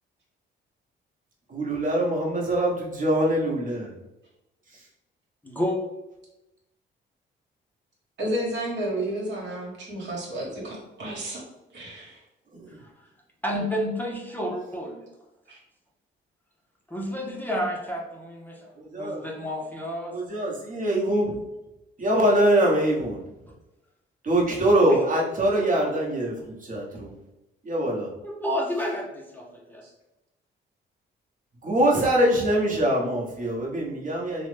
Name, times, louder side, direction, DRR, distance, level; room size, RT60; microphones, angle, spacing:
voice 1, 1.5-4.0 12.5-12.8 18.8-19.2 20.1-21.3 22.0-23.2 24.2-27.2 27.6-28.1 31.6-34.5, right 1 dB, 40° right, -2 dB, 0.9 m, -23 dB
voice 2, 5.4-5.8 12.7-12.9 13.4-15.1 16.9-18.7 19.0-20.2 24.9-25.0 28.2-29.8, equal, 10° left, -2 dB, 0.5 m, -30 dB
voice 3, 8.2-11.4 11.7-12.2 15.5-15.6 29.8-29.9, right 1 dB, 65° right, -3 dB, 1.1 m, -31 dB
3.0 x 2.0 x 3.2 m, 0.95 s
cardioid pair, 90°, 20 cm